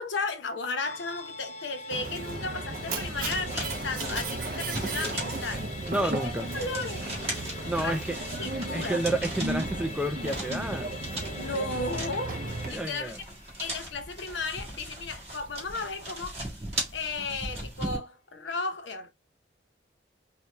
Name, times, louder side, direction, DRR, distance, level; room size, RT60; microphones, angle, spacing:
voice 1, 0.0-7.0 7.7-8.0 8.4-9.0 11.4-12.4 12.7-13.1 13.6-16.3 16.9-19.1, left 3 dB, 80° left, 0.8 m, -34 dB
Musical instrument, 0.8-15.5 15.8-15.9, left 4 dB, 35° left, 0.8 m, -45 dB
Mechanisms, 1.9-12.7, right 2 dB, 50° right, 0.7 m, -35 dB
sound 1, 2.9-18.0, right 1 dB, 35° right, 1.5 m, -38 dB
voice 2, 5.9-6.5 7.7-8.2 8.7-11.0 12.7-13.2, right 1 dB, 5° right, 0.3 m, -30 dB
4.3 x 2.3 x 3.1 m
head